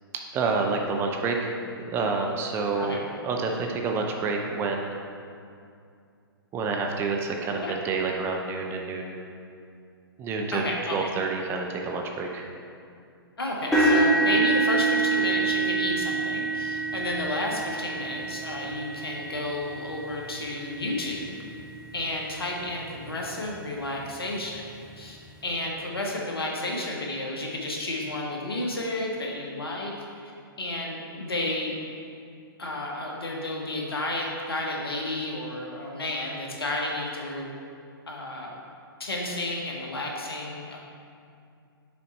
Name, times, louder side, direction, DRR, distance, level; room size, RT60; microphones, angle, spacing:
voice 1, 0.3-1.5 1.8-3.0 3.2-5.0 6.5-9.2 10.2-10.6 10.9-12.5, right 4 dB, 20° right, 2 dB, 0.5 m, -28 dB
voice 2, 10.5-11.1 13.4-21.4 21.9-24.7 25.0-30.3 30.6-31.7 32.6-37.5 38.1-38.6 39.0-40.8, left 2 dB, 75° left, -1 dB, 1.2 m, -32 dB
sound 1, 13.7-21.7 22.4-22.6 23.1-23.2 24.5-24.6, right 3 dB, ahead, 1.4 m, -26 dB
6.4 x 4.2 x 4.1 m, 2.4 s
figure-of-eight pair, 120°, 13 cm